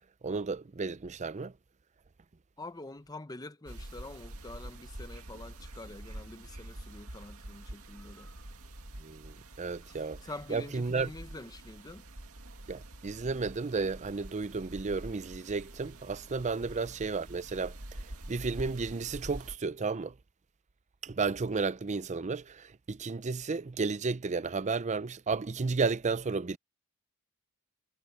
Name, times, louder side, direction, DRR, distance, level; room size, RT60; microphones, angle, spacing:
voice 1, 0.2-1.5 9.0-10.2 10.5-11.1 12.7-17.8 18.3-20.1 21.0-26.6, right 4 dB, 30° right, 0.5 m, -33 dB
voice 2, 2.6-8.3 9.9-12.0 16.6-16.9, left 2 dB, 15° left, 0.8 m, -46 dB
sound 1, 3.7-19.6, right 1 dB, 70° right, 2.3 m, -46 dB
head